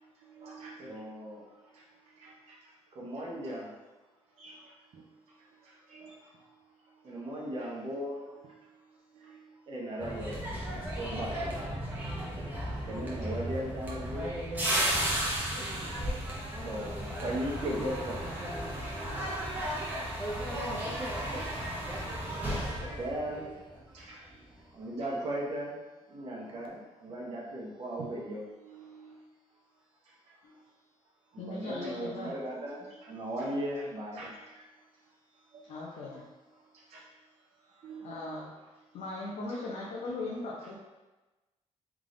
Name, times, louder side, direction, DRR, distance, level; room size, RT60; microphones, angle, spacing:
voice 1, 0.2-1.1 1.7-1.8 2.2-2.6 4.4-5.0 5.6-6.2 9.1-9.4 11.3-11.9 13.0-13.1 21.5-21.7 22.9-23.0 23.9-24.2 28.6-29.2 34.2-34.3 35.6-35.7 36.9-37.0 37.8-38.4, right 4 dB, 70° right, -5 dB, 0.7 m, -50 dB
voice 2, 0.8-1.4 2.9-3.7 7.0-8.2 9.7-10.4 10.9-11.7 12.8-14.3 16.6-18.2 23.0-23.5 24.7-25.8 26.1-28.4 31.3-34.3, right 1 dB, 45° right, -3 dB, 1.0 m, -37 dB
sound 1, 10.0-24.0 24.3-24.6, right 1 dB, 15° right, 1.0 m, -34 dB
voice 3, 31.4-32.3 35.6-36.2 38.0-38.5 38.9-40.7, left 2 dB, 85° left, -5 dB, 0.8 m, -38 dB
3.6 x 3.4 x 3.9 m, 1.1 s
cardioid pair, 160°, 12 cm